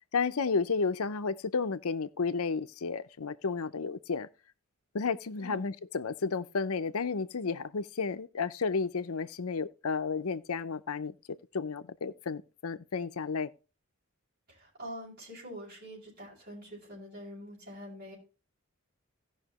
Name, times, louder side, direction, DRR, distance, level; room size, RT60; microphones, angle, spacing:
voice 1, 0.1-4.3 4.9-11.1 11.5-13.5, left 4 dB, 90° left, 0.7 m, -32 dB
voice 2, 5.4-5.7 14.5-18.1, equal, 45° right, 5.6 m, -45 dB
17.0 x 5.8 x 2.9 m
head